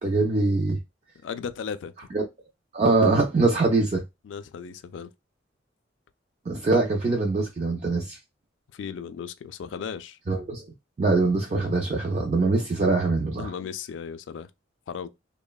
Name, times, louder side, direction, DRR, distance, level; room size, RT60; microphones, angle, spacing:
voice 1, 0.0-0.8 2.1-2.2 2.7-4.0 6.5-8.2 10.3-10.7 11.0-13.5, right 3 dB, 35° right, 0.3 m, -23 dB
voice 2, 1.2-1.9 4.2-5.1 8.7-10.2 13.4-14.5 14.9-15.1, left 6 dB, 80° left, 0.3 m, -36 dB
3.0 x 2.1 x 2.2 m
head